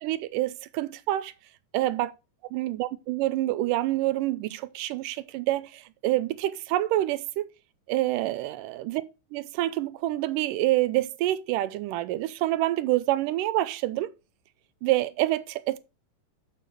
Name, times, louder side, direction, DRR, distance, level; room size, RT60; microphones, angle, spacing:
voice 1, 0.0-1.3 1.7-2.1 2.5-7.5 7.9-9.0 9.3-14.1 14.8-15.8, right 15 dB, 90° right, 2.2 m, -27 dB
7.1 x 5.7 x 6.6 m
omnidirectional pair, 3.8 m